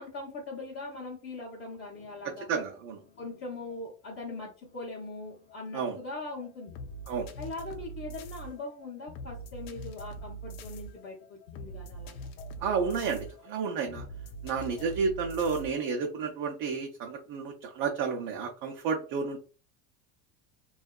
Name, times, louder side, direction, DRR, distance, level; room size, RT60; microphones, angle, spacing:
voice 1, 0.0-2.5 3.2-6.7 7.4-12.1, left 2 dB, 25° left, -5 dB, 0.7 m, -41 dB
sound 1, 1.7-15.9, right 1 dB, 65° left, 0.6 m, -44 dB
voice 2, 2.5-3.0 5.7-6.0 7.1-7.3 12.6-14.1 14.4-19.4, right 5 dB, 50° right, 2 dB, 0.5 m, -31 dB
2.6 x 2.3 x 2.2 m, 0.36 s
supercardioid pair, 130°, 45 cm